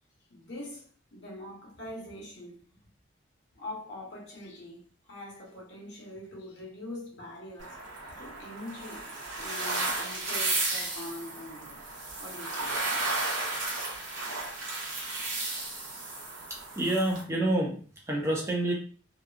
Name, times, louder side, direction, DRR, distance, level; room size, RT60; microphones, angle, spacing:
voice 1, 0.3-2.6 3.5-9.1 9.4-11.8 12.2-12.8, left 1 dB, 60° left, 1.0 m, -43 dB
sound 1, 7.6-17.2, right 2 dB, 85° right, 0.9 m, -34 dB
voice 2, 16.5-18.7, right 1 dB, 15° right, 0.5 m, -28 dB
2.8 x 2.3 x 2.4 m
head